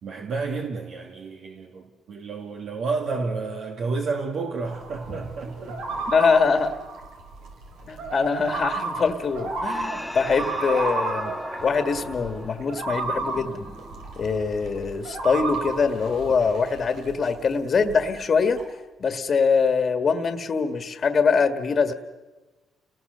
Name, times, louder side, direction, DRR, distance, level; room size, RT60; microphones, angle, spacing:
voice 1, 0.0-6.1, right 4 dB, 70° right, 2.3 m, -31 dB
sound 1, 4.6-17.4 17.7-18.6, right 3 dB, 90° right, 4.5 m, -33 dB
voice 2, 6.1-6.7 7.9-11.3 11.6-13.7 14.2-18.6 19.0-21.9, left 5 dB, 45° left, 1.7 m, -23 dB
sound 2, 9.6-14.4, left 1 dB, ahead, 1.8 m, -37 dB
29.5 x 19.0 x 6.8 m
cardioid pair, 90°, 0 cm